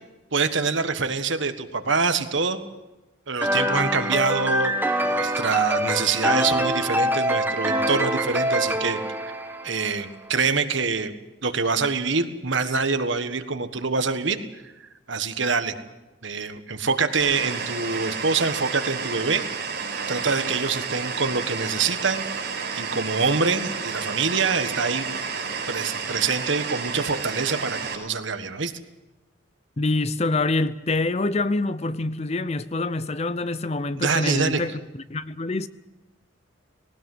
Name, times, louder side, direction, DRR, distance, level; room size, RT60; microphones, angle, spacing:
voice 1, 0.3-2.6 3.3-4.7 5.0-9.3 9.6-11.1 11.4-14.4 14.6-14.7 15.1-15.7 16.2-19.5 20.1-22.2 22.7-25.1 25.7-28.7 33.9-34.6, right 4 dB, 70° right, 1.5 m, -25 dB
sound 1, 3.4-10.0, right 1 dB, 10° right, 1.3 m, -25 dB
sound 2, 17.2-27.9, right 5 dB, 50° right, 4.9 m, -31 dB
voice 2, 29.8-34.7 35.1-35.7, left 2 dB, 30° left, 0.6 m, -25 dB
19.5 x 18.5 x 7.8 m
head